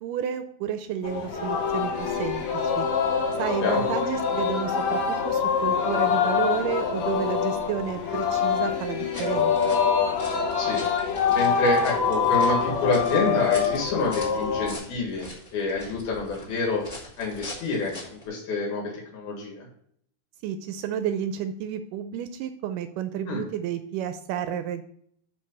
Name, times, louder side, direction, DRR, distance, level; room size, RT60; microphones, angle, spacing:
voice 1, 0.0-2.9 3.4-5.0 5.3-9.5 20.4-24.8, right 9 dB, 80° right, 9 dB, 1.9 m, -31 dB
Singing, 1.0-14.7, left 6 dB, 60° left, 2.0 m, -25 dB
sound 1, 9.0-18.3, left 2 dB, 20° left, 2.0 m, -43 dB
voice 2, 11.3-16.8 17.2-19.7 23.3-23.4, left 3 dB, 80° left, -2 dB, 3.7 m, -28 dB
11.0 x 3.9 x 5.4 m, 0.67 s
omnidirectional pair, 4.3 m